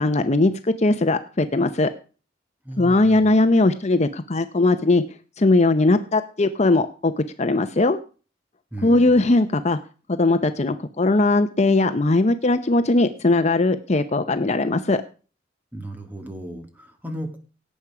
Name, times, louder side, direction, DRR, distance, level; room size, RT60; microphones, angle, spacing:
voice 1, 0.0-1.9 2.8-5.0 5.4-7.1 7.4-8.0 8.8-9.8 10.1-15.0, left 2 dB, 40° left, 9 dB, 0.8 m, -19 dB
voice 2, 2.7-3.3 8.7-9.3 15.7-17.4, right 1 dB, 10° right, 5 dB, 2.1 m, -35 dB
17.5 x 8.4 x 4.9 m, 0.37 s
head